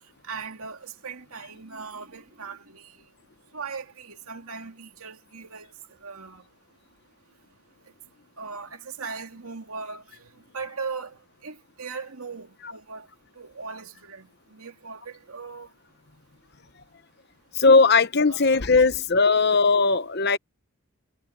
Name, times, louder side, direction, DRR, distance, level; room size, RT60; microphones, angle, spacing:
voice 1, 0.2-2.8 3.5-5.7 6.0-6.4 8.4-10.0 10.5-11.1 11.4-13.1 13.4-15.7 18.3-19.0 19.3-19.4, right 5 dB, 80° right, 2.4 m, -38 dB
voice 2, 17.5-20.4, left 4 dB, 50° left, 0.9 m, -18 dB
head